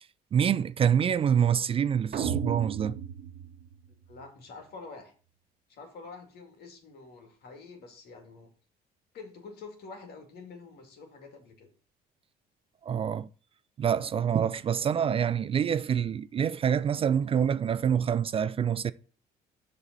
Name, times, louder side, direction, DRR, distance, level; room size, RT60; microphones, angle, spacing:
voice 1, 0.3-3.0 12.8-13.3 13.8-18.9, right 8 dB, 35° right, 0.3 m, -26 dB
sound 1, 2.1-4.3, right 8 dB, 50° right, 1.1 m, -34 dB
voice 2, 4.1-5.1 5.7-8.5 9.1-11.7, left 4 dB, 70° left, 2.4 m, -47 dB
7.0 x 4.1 x 6.7 m
cardioid pair, 110°, 17 cm